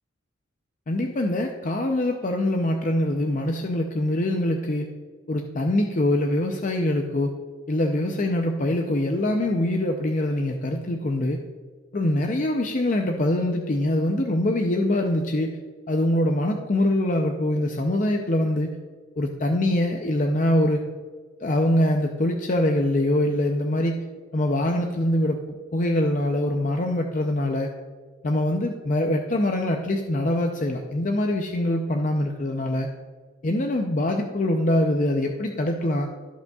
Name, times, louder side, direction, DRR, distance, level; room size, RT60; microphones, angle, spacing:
voice 1, 0.9-4.9 5.3-7.3 7.7-11.4 11.9-15.6 15.9-18.8 19.2-20.8 21.4-24.0 24.3-25.4 25.7-27.7 28.2-32.9 33.4-36.1, left 1 dB, 40° left, 3 dB, 0.5 m, -24 dB
14.0 x 5.3 x 2.3 m, 1.5 s
head